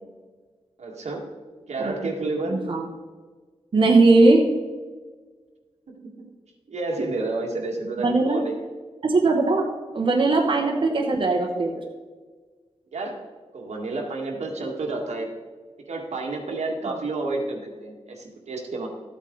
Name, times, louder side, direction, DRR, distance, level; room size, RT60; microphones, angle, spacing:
voice 1, 0.8-1.3 1.7-2.6 5.9-6.3 6.7-8.6 12.9-13.2 13.5-15.3 15.9-18.9, right 3 dB, 85° right, 0 dB, 1.8 m, -30 dB
voice 2, 2.5-2.8 3.7-4.4 8.0-8.4 9.0-9.6 9.9-11.8 16.8-16.9, right 3 dB, 50° right, 0 dB, 1.1 m, -19 dB
13.5 x 8.5 x 3.9 m, 1.4 s
wide cardioid pair, 120°, 11 cm